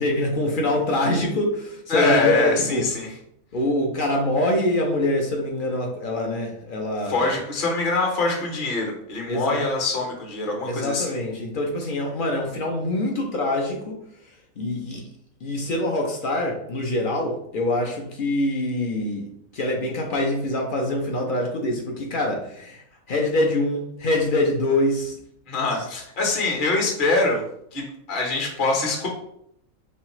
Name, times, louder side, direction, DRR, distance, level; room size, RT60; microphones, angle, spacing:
voice 1, 0.0-2.8 3.5-7.3 9.3-9.6 10.6-14.0 14.6-15.0 15.4-19.3 19.5-22.8 23.1-25.2, left 1 dB, 60° left, 1 dB, 0.5 m, -24 dB
voice 2, 1.9-3.1 7.1-11.2 25.5-27.4 27.7-29.1, left 3 dB, 40° left, 0 dB, 0.9 m, -24 dB
3.5 x 3.2 x 2.9 m, 0.73 s
omnidirectional pair, 1.5 m